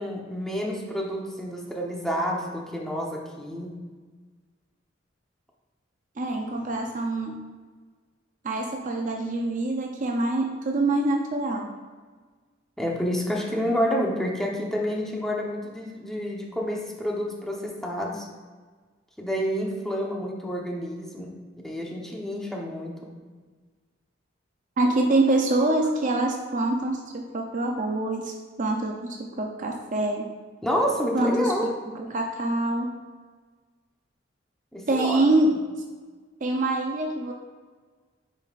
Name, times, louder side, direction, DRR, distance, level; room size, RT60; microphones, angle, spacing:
voice 1, 0.0-3.7 12.8-18.3 19.2-21.3 21.6-23.0 30.6-31.7 34.7-35.2, equal, ahead, -2 dB, 1.0 m, -29 dB
voice 2, 6.2-7.4 8.4-11.7 24.8-30.3 31.1-31.5 31.9-32.9 34.9-35.5 36.4-37.3, right 2 dB, 40° right, 2 dB, 0.6 m, -25 dB
9.2 x 5.3 x 2.5 m, 1.4 s
head